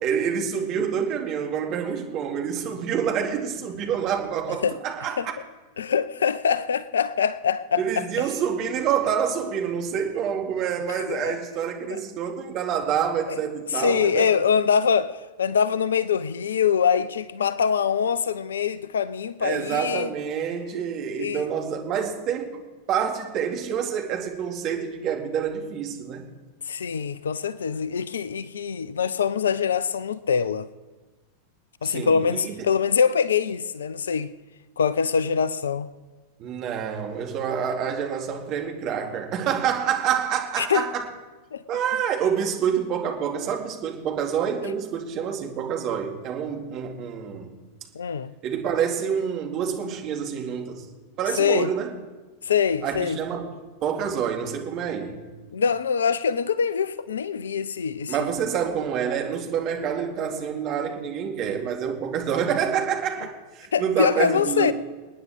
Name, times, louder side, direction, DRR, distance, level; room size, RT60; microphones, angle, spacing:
voice 1, 0.0-5.3 7.8-14.4 19.4-22.6 22.9-26.2 31.8-32.6 36.4-41.1 41.7-47.5 48.4-50.9 51.2-51.9 52.8-55.3 58.1-64.7, right 8 dB, 35° right, 2.4 m, -27 dB
voice 2, 5.8-8.3 10.9-11.4 11.9-12.0 13.3-13.4 13.7-15.1 15.4-20.1 21.2-21.4 26.7-30.7 31.8-34.3 34.8-35.9 40.6-40.9 41.5-41.6 47.9-48.3 51.4-51.7 52.4-53.2 55.5-58.2 63.7-64.7, left 7 dB, 65° left, 0.5 m, -24 dB
28.0 x 9.6 x 3.6 m
figure-of-eight pair, 90°, 0 cm